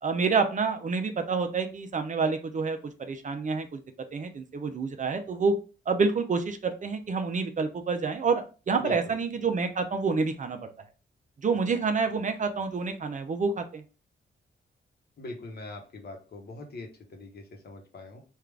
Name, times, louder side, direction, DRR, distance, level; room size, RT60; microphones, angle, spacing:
voice 1, 0.0-3.8 4.1-5.5 5.9-10.7 11.4-13.8, right 4 dB, 40° right, 6 dB, 0.5 m, -28 dB
voice 2, 8.8-9.2 15.2-18.2, left 2 dB, 50° left, 2 dB, 1.0 m, -42 dB
3.5 x 2.4 x 3.3 m, 0.35 s
wide cardioid pair, 120°, 21 cm